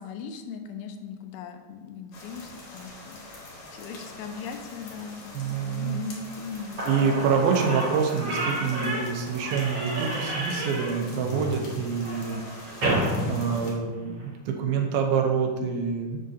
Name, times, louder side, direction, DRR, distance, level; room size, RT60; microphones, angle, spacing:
voice 1, 0.0-3.4 3.7-7.8 8.6-9.1 13.1-13.6 15.6-16.0, left 6 dB, 85° left, 6 dB, 2.4 m, -39 dB
sound 1, 2.1-13.7, left 2 dB, 55° left, 1.8 m, -45 dB
voice 2, 5.3-6.0 6.9-16.2, right 6 dB, 80° right, 3 dB, 2.6 m, -27 dB
Slam / Squeak, 6.5-6.6 6.8-14.3, right 1 dB, 40° right, 1.9 m, -31 dB
7.3 x 6.4 x 2.7 m, 1.2 s
omnidirectional pair, 4.3 m